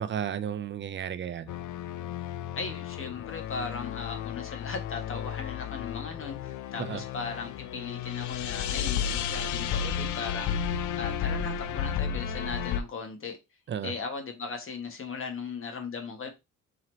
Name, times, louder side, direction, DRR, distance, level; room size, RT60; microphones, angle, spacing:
voice 1, 0.0-1.6 6.8-7.0 13.7-13.9, right 9 dB, 40° right, 0.4 m, -33 dB
sound 1, 1.5-12.8, left 8 dB, 75° left, 0.5 m, -33 dB
voice 2, 2.6-13.4 13.8-16.3, left 4 dB, 45° left, 1.2 m, -38 dB
3.9 x 2.9 x 3.1 m
cardioid pair, 90°, 30 cm